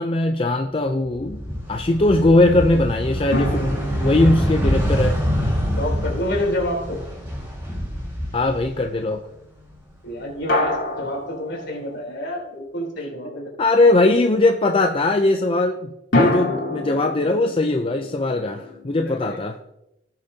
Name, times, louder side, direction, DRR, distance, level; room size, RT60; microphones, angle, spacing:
voice 1, 0.0-1.4 1.7-5.2 8.3-9.2 13.6-19.6, left 2 dB, 30° left, 5 dB, 0.5 m, -20 dB
sound 1, 1.0-9.2 9.5-10.7, equal, 10° right, 4.2 m, -25 dB
sound 2, 3.3-6.7 10.5-12.5 16.1-19.2, left 2 dB, 80° left, 2.8 m, -28 dB
voice 2, 5.7-7.0 10.0-13.5 19.0-19.4, left 1 dB, 65° left, -1 dB, 3.6 m, -28 dB
17.5 x 6.8 x 2.8 m, 0.88 s
head